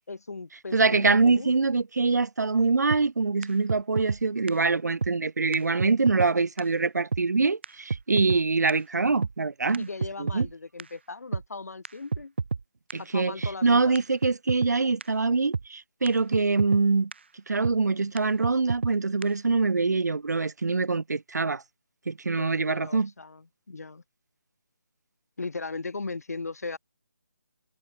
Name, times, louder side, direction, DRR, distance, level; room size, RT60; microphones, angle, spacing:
voice 1, 0.1-1.5 8.1-8.4 9.8-12.3 13.0-13.9 22.4-24.0 25.4-26.8, left 3 dB, 60° left, 3.6 m, -38 dB
voice 2, 0.7-9.9 10.2-10.5 12.9-17.1 17.5-21.6 22.1-23.1, right 4 dB, 70° right, 1.0 m, -24 dB
sound 1, 2.9-3.0 3.4-3.5 3.7-4.2 4.5-4.6 5.0-5.1 5.5-5.6 5.8-6.3 6.6-6.7 7.1-7.2 7.6-7.7 7.9-8.4 8.7-8.8 9.2-9.3 9.7-10.5 10.8-10.9 11.3-11.4 11.9-12.0 12.1-12.6 12.9-13.0 13.4-13.5 14.0-14.1 14.2-14.7 15.0-15.1 15.5-15.7 16.1-16.2 16.3-16.8 17.1-17.2 17.6-17.8 18.2-18.3 18.4-18.9 19.2-19.3, right 5 dB, 40° right, 1.5 m, -29 dB
hypercardioid pair, 180°, 10 cm